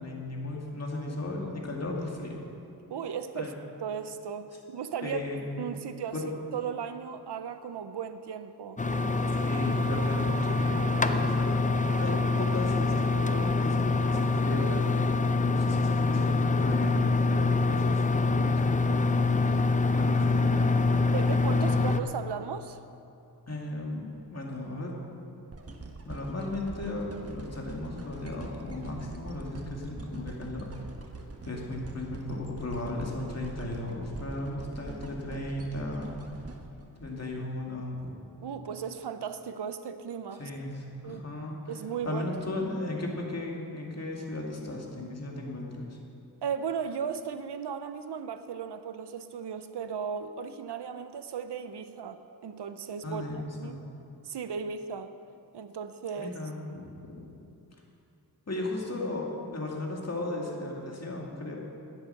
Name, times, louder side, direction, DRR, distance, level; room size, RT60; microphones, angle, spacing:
voice 1, 0.0-2.4 3.3-3.5 5.0-5.4 6.1-6.2 9.4-11.7 12.0-15.1 15.4-20.9 21.6-21.9 23.5-24.9 26.0-30.7 31.4-36.1 37.0-38.1 40.4-41.7 42.0-46.0 53.0-53.8 56.2-57.2 58.5-61.6, left 2 dB, 40° left, -1 dB, 2.3 m, -36 dB
voice 2, 2.9-3.5 3.8-5.2 5.6-6.2 6.5-8.8 21.1-22.8 38.4-40.5 41.0-41.3 41.7-42.2 46.4-53.2 53.6-53.8 54.2-55.1 55.5-56.3, right 7 dB, 90° right, 10 dB, 0.7 m, -36 dB
sound 1, 8.8-22.0, left 3 dB, 20° left, 0.5 m, -25 dB
sound 2, 25.5-37.7 38.3-38.4, right 2 dB, 35° right, 1.2 m, -43 dB
13.0 x 9.3 x 6.6 m, 2.6 s
wide cardioid pair, 105°, 39 cm